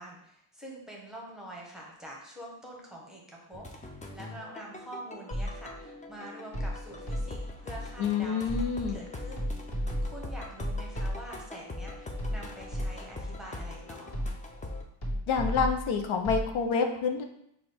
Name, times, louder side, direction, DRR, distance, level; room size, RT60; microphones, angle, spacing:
voice 1, 0.0-14.2, right 1 dB, ahead, -3 dB, 0.9 m, -46 dB
sound 1, 3.5-14.8, left 2 dB, 15° left, 0.4 m, -42 dB
sound 2, 5.3-5.8 6.5-7.6 8.5-9.0 9.4-11.5 12.2-13.2 14.1-14.6 15.0-16.5, equal, 60° left, 1.6 m, -34 dB
voice 2, 8.0-9.0 15.3-17.2, left 5 dB, 85° left, 5 dB, 0.7 m, -28 dB
5.9 x 2.5 x 3.3 m, 0.74 s
wide cardioid pair, 150°, 47 cm